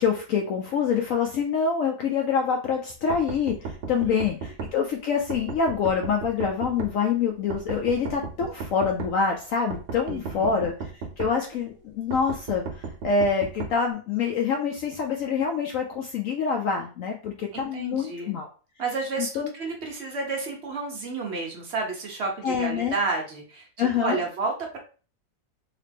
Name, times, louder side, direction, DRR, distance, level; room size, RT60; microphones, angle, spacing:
voice 1, 0.0-18.5 19.2-19.5 22.4-23.0 23.8-24.2, left 6 dB, 75° left, 2 dB, 0.7 m, -26 dB
sound 1, 3.1-4.7 5.3-6.9 7.5-9.1 9.7-11.3 12.1-13.7, right 4 dB, 70° right, 1.1 m, -34 dB
voice 2, 10.1-10.7 17.5-18.3 18.8-23.7 24.0-24.8, right 3 dB, 55° right, 1 dB, 0.8 m, -31 dB
2.9 x 2.8 x 3.4 m, 0.37 s
omnidirectional pair, 1.9 m